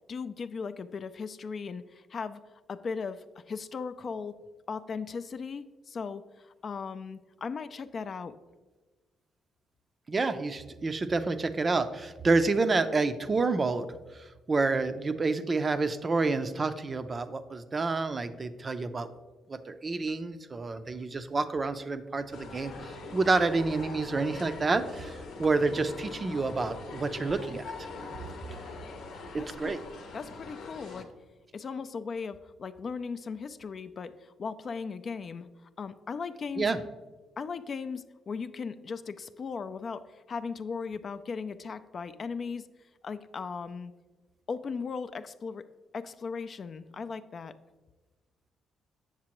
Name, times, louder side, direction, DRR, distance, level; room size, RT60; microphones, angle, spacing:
voice 1, 0.1-2.4 2.7-4.4 4.7-8.4 29.4-29.7 30.1-31.1 31.5-35.5 35.8-36.7 37.4-42.7 43.0-43.9 44.5-45.7 45.9-47.6, left 5 dB, 45° left, 12 dB, 0.3 m, -37 dB
voice 2, 10.1-13.9 14.1-19.1 19.5-27.6 29.3-29.8 36.6-36.8, right 3 dB, 30° right, 10 dB, 0.4 m, -29 dB
sound 1, 22.3-31.0, left 3 dB, 80° left, 0.8 m, -42 dB
7.4 x 6.7 x 3.0 m, 1.3 s
cardioid pair, 90°, 0 cm